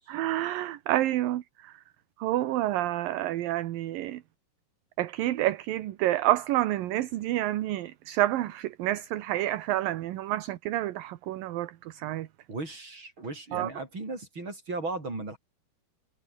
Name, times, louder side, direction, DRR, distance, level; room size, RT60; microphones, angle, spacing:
voice 1, 0.1-1.7 2.2-4.2 5.0-12.3 13.5-13.7, right 15 dB, 70° right, 2.7 m, -29 dB
voice 2, 12.5-15.4, right 2 dB, 30° right, 8.1 m, -36 dB
omnidirectional pair, 4.5 m